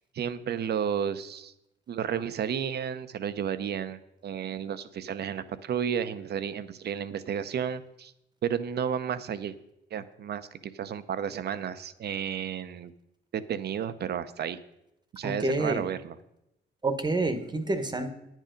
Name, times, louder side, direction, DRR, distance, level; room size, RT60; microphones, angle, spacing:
voice 1, 0.1-1.5 1.9-8.1 8.4-9.6 9.9-12.9 13.3-14.6 15.1-16.2, right 8 dB, 55° right, 12 dB, 0.7 m, -32 dB
voice 2, 15.2-15.8 16.8-18.1, right 2 dB, 20° right, 8 dB, 1.1 m, -28 dB
9.9 x 9.1 x 5.2 m, 0.84 s
cardioid pair, 90°, 20 cm